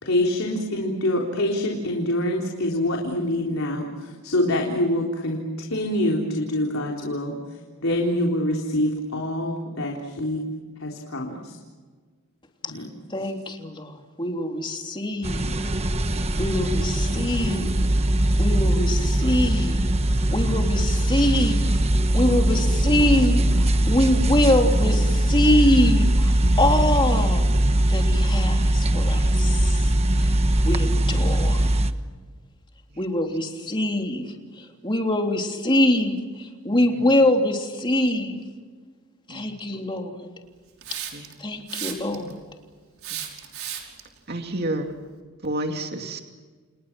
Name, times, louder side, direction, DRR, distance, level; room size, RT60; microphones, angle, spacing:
voice 1, 0.0-7.4 7.8-10.4 10.8-11.6 12.6-12.9, left 1 dB, 75° left, -1 dB, 3.8 m, -25 dB
voice 2, 13.1-15.5 16.4-17.7 18.4-19.9 20.3-21.7 22.1-27.5 27.9-29.9 30.2-31.8 33.0-38.4 39.3-40.3 41.4-42.4, left 1 dB, 25° left, 2 dB, 3.3 m, -24 dB
sound 1, 15.2-31.9, right 1 dB, 30° right, 1.3 m, -21 dB
Hiss, 40.8-41.3 41.7-42.3 43.0-44.0, right 10 dB, 80° right, 5.5 m, -33 dB
voice 3, 44.3-44.9 45.4-46.2, right 1 dB, 50° right, 4 dB, 2.5 m, -30 dB
30.0 x 29.5 x 6.1 m, 1.5 s
head